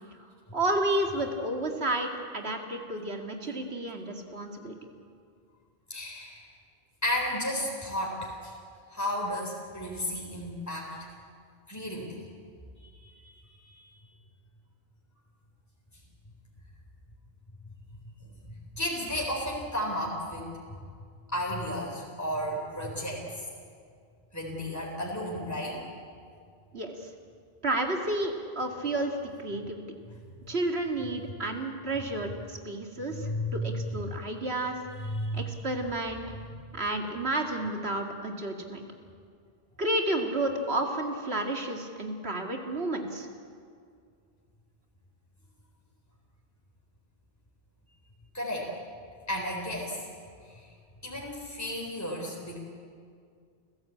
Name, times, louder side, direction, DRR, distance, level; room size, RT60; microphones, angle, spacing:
voice 1, 0.5-4.7 26.7-26.9 27.6-29.8 30.5-34.8 35.3-36.2 36.7-38.8 39.8-43.3, right 1 dB, 80° right, 3 dB, 2.5 m, -31 dB
voice 2, 5.9-6.4 7.0-8.5 8.9-11.1 11.7-12.1 13.0-13.3 13.6-13.7 18.8-20.5 21.3-23.2 24.3-25.8 33.1-34.0 35.0-35.6 48.3-48.7 49.3-50.0 51.0-52.6, equal, 15° left, -2 dB, 3.9 m, -33 dB
29.5 x 15.5 x 8.6 m, 2.2 s
omnidirectional pair, 1.0 m